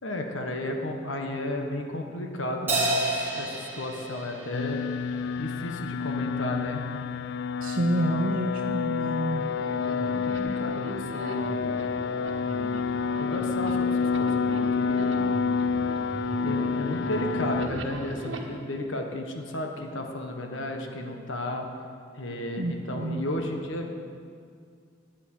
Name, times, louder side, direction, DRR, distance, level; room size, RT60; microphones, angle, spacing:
voice 1, 0.0-4.8 5.4-6.8 9.3-11.7 13.2-15.2 16.4-21.7 22.2-24.0, left 1 dB, 70° left, 3 dB, 1.4 m, -33 dB
Crash cymbal, 2.7-5.4, right 2 dB, 10° right, 3.0 m, -30 dB
sound 1, 4.5-17.7, left 5 dB, 55° left, 0.3 m, -28 dB
voice 2, 7.6-9.5 22.6-23.3, right 1 dB, 45° right, 1 dB, 0.6 m, -28 dB
sound 2, 9.4-18.4, equal, 70° right, 1.5 m, -38 dB
10.5 x 8.7 x 9.0 m, 2.2 s
head